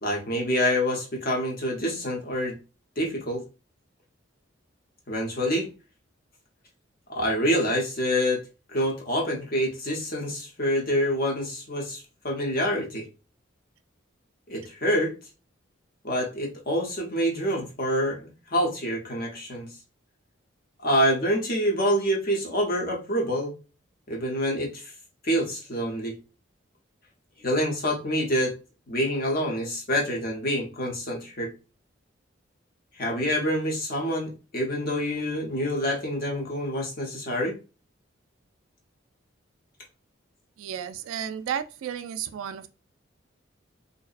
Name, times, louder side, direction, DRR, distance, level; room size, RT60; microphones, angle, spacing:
voice 1, 0.0-2.6 3.0-3.4 5.1-5.7 7.1-8.4 8.7-13.0 14.5-15.1 16.0-19.7 20.8-23.5 24.1-24.9 25.2-26.1 27.4-28.6 28.9-31.5 33.0-37.5, equal, 45° left, 0.7 m, -26 dB
voice 2, 40.6-42.7, right 9 dB, 90° right, 0.3 m, -33 dB
2.6 x 2.1 x 2.4 m
head